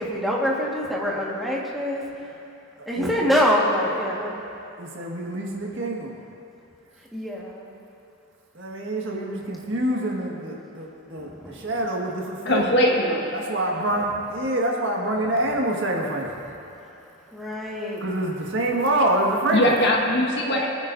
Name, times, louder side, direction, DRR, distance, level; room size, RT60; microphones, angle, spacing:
voice 1, 0.0-2.3 2.9-4.4 7.1-7.8 11.2-11.7 17.3-18.0, equal, ahead, -5 dB, 1.6 m, -25 dB
voice 2, 2.8-3.2 4.8-6.2 8.5-12.7 13.3-16.3 18.0-19.8, right 1 dB, 55° right, -2 dB, 1.7 m, -26 dB
voice 3, 12.4-13.3 19.5-20.7, equal, 55° left, -1 dB, 1.6 m, -21 dB
24.0 x 9.6 x 2.7 m, 2.8 s
head